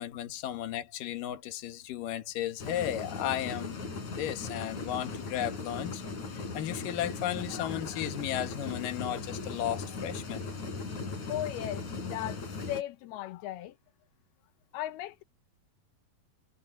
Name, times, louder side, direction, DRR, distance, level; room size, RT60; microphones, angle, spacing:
voice 1, 0.0-3.8 4.1-6.0 6.5-10.5, left 12 dB, 65° left, 2.9 m, -34 dB
sound 1, 2.6-12.8, left 4 dB, 50° left, 5.9 m, -38 dB
voice 2, 11.3-12.4 12.7-13.8 14.7-15.2, left 13 dB, 85° left, 2.9 m, -37 dB
omnidirectional pair, 4.4 m